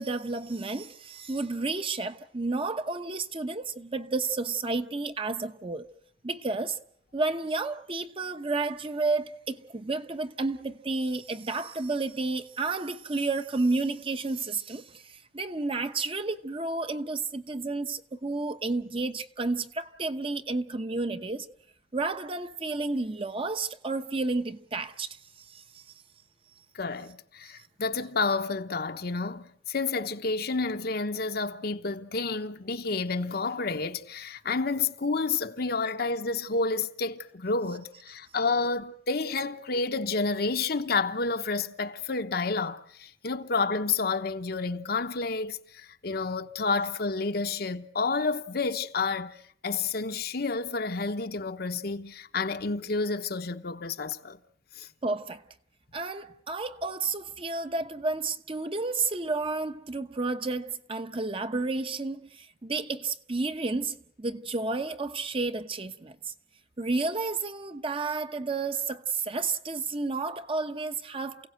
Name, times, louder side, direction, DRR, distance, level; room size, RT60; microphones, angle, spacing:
voice 1, 0.0-5.9 6.2-6.8 7.1-21.5 21.9-25.8 55.0-55.4 55.9-66.3 66.8-71.5, right 3 dB, 30° right, 1.0 m, -31 dB
voice 2, 26.7-54.4 54.8-54.9, left 4 dB, 60° left, 1.0 m, -30 dB
29.0 x 16.5 x 7.7 m
head